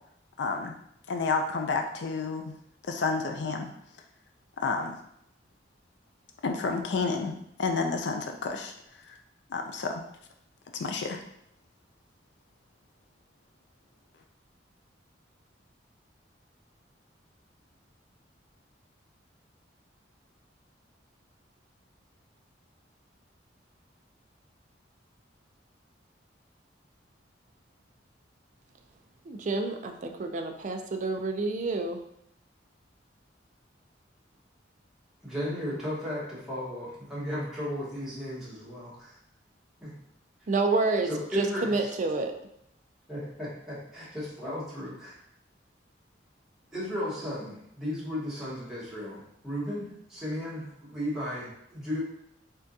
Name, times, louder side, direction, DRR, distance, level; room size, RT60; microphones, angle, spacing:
voice 1, 0.4-0.7 1.1-2.5 2.9-3.7 4.6-5.0 6.4-8.7 9.5-10.0 10.7-11.2, left 4 dB, 65° left, 4 dB, 0.4 m, -30 dB
voice 2, 29.3-32.0 40.5-41.1 41.3-42.3, right 3 dB, 40° right, 4 dB, 0.4 m, -28 dB
voice 3, 35.2-39.2 39.8-39.9 41.0-41.9 43.1-45.2 46.7-52.0, left 1 dB, 5° right, -9 dB, 1.3 m, -35 dB
3.6 x 3.4 x 2.7 m, 0.75 s
head